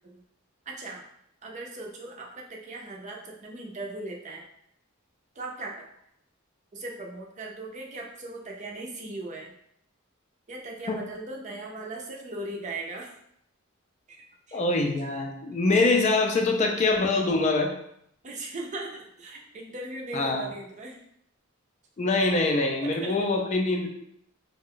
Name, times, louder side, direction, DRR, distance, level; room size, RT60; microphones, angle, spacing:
voice 1, 0.7-1.0 1.4-4.4 5.4-5.8 6.7-9.5 10.5-13.1 14.1-14.2 14.5-14.6 18.2-21.0 22.8-23.1, right 2 dB, 35° right, -1 dB, 0.5 m, -38 dB
voice 2, 14.5-17.7 20.1-20.5 22.0-23.9, left 3 dB, 35° left, 2 dB, 0.3 m, -24 dB
2.5 x 2.2 x 3.6 m, 0.73 s
head